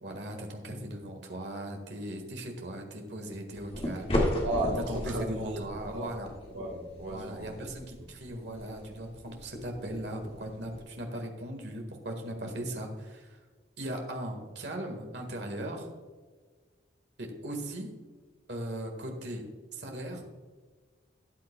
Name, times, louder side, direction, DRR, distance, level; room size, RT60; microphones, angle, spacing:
voice 1, 0.0-4.1 4.9-6.3 7.1-13.4 13.8-15.9 17.2-17.9 18.5-19.5 19.7-20.2, right 1 dB, 65° right, 3 dB, 1.7 m, -38 dB
sound 1, 3.5-10.8, left 1 dB, 30° left, 1.8 m, -36 dB
voice 2, 4.4-5.7 5.9-6.1 6.5-7.6 8.0-8.1, right 1 dB, 85° right, 1 dB, 1.4 m, -34 dB
13.0 x 9.5 x 2.3 m, 1.4 s
head